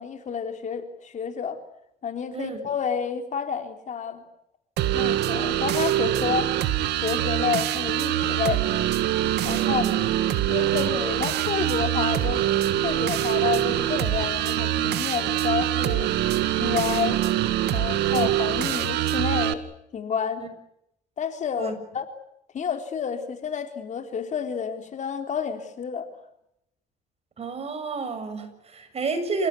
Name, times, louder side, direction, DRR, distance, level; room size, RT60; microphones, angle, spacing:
voice 1, 0.0-1.6 2.0-4.2 4.9-6.5 7.0-8.7 9.4-9.8 10.5-12.5 12.8-16.1 16.6-17.2 17.7-19.6 19.9-20.4 21.2-22.1 22.5-26.1, left 7 dB, 45° left, 7 dB, 3.8 m, -29 dB
sound 1, 4.8-19.5, right 13 dB, 80° right, 2.0 m, -24 dB
voice 2, 9.4-10.0 18.1-18.3 20.4-20.5 21.6-21.7 27.4-29.5, right 4 dB, 35° right, 9 dB, 6.7 m, -31 dB
29.0 x 17.5 x 9.8 m, 0.78 s
cardioid pair, 110°, 17 cm